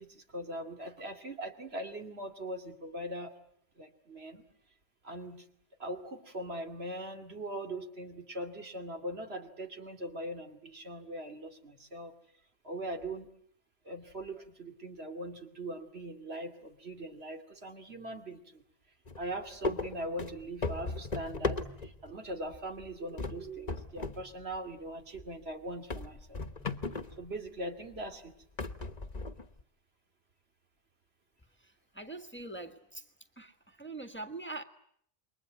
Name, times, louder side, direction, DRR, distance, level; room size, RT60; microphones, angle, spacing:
voice 1, 0.0-3.3 3.8-4.4 5.0-5.5 5.8-12.2 12.6-13.3 13.8-18.6 19.2-26.4 27.2-28.3, right 1 dB, 75° right, 5 dB, 2.8 m, -41 dB
sound 1, 19.1-19.3 19.6-22.1 22.5-22.9 23.2-24.2 24.5-24.6 25.2-25.3 25.9-27.2 27.9-28.0 28.6-29.6, left 3 dB, 40° left, 1.4 m, -36 dB
voice 2, 31.6-33.1 33.4-34.6, right 2 dB, 10° left, 4 dB, 1.6 m, -43 dB
28.5 x 22.5 x 9.3 m, 0.68 s
omnidirectional pair, 1.1 m